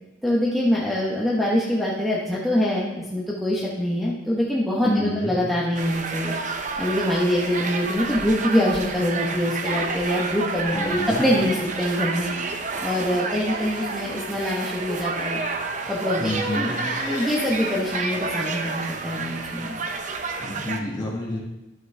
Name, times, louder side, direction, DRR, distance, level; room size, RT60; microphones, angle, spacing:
voice 1, 0.2-15.4 15.9-16.7 17.1-19.8, left 1 dB, ahead, -7 dB, 1.1 m, -24 dB
voice 2, 4.8-5.4 10.7-11.2 16.2-16.8 20.4-21.4, left 1 dB, 20° left, -3 dB, 1.9 m, -29 dB
sound 1, 5.8-20.8, right 4 dB, 40° right, 0.7 m, -30 dB
sound 2, 9.1-15.8 16.1-18.6, left 1 dB, 40° left, 2.6 m, -37 dB
11.5 x 6.2 x 3.4 m, 1.0 s
head